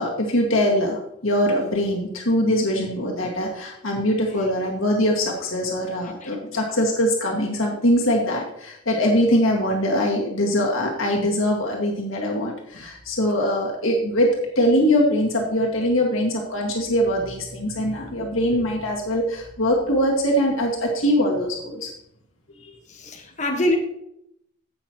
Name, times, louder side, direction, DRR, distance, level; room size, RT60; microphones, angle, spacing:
voice 1, 0.0-21.9 22.6-22.7, equal, 90° left, -1 dB, 2.0 m, -22 dB
voice 2, 22.9-23.8, left 1 dB, 35° left, 2 dB, 1.3 m, -25 dB
16.0 x 6.1 x 3.0 m, 0.76 s
head